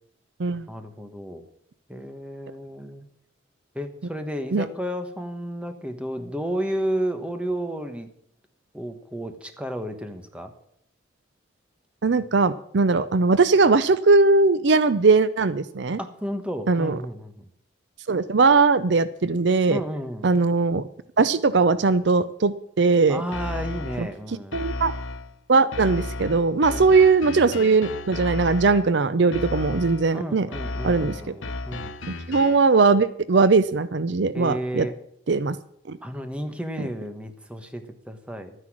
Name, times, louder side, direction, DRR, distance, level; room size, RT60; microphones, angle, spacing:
voice 1, 0.7-1.4 1.9-3.1 3.7-8.1 8.7-10.5 16.0-17.5 19.7-20.3 23.1-24.7 26.7-26.9 30.1-31.9 34.3-35.0 36.0-38.5, equal, 5° right, 7 dB, 1.2 m, -32 dB
voice 2, 12.0-16.0 16.7-17.0 18.1-19.8 20.2-20.8 21.2-23.2 24.0-24.1 24.5-24.9 25.5-30.5 30.8-31.2 32.1-34.9 35.3-35.6 35.9-36.0, right 4 dB, 60° right, 15 dB, 0.5 m, -20 dB
sound 1, 23.3-24.1 24.5-25.3 25.7-28.9 29.3-30.1 30.5-32.7, left 2 dB, 85° left, 1.1 m, -33 dB
12.5 x 9.8 x 6.2 m, 0.71 s
head